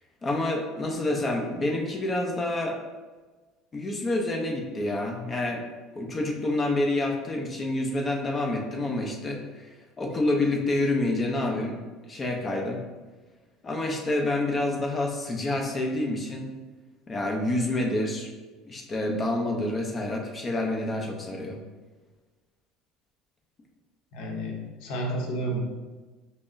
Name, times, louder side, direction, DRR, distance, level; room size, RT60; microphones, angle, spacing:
voice 1, 0.2-2.8 3.7-5.6 6.0-11.8 12.1-12.8 13.6-16.5 17.1-18.3 18.6-21.6, left 2 dB, 25° left, 1 dB, 0.6 m, -28 dB
voice 2, 24.1-25.6, right 1 dB, 65° left, 0 dB, 0.8 m, -31 dB
5.7 x 2.0 x 2.6 m, 1.3 s
supercardioid pair, 125°, 0 cm